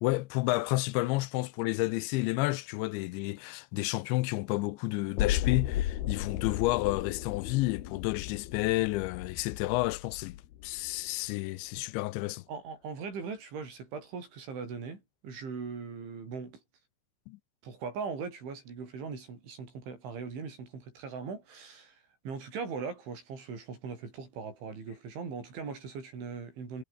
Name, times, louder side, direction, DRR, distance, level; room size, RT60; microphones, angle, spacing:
voice 1, 0.0-10.4 10.6-12.4 17.3-17.4, left 21 dB, 85° left, 2.9 m, -30 dB
sound 1, 5.2-11.1 11.5-11.6, left 12 dB, 65° left, 3.2 m, -35 dB
voice 2, 12.5-16.6 17.6-26.8, right 5 dB, 85° right, 9.5 m, -40 dB
omnidirectional pair, 5.3 m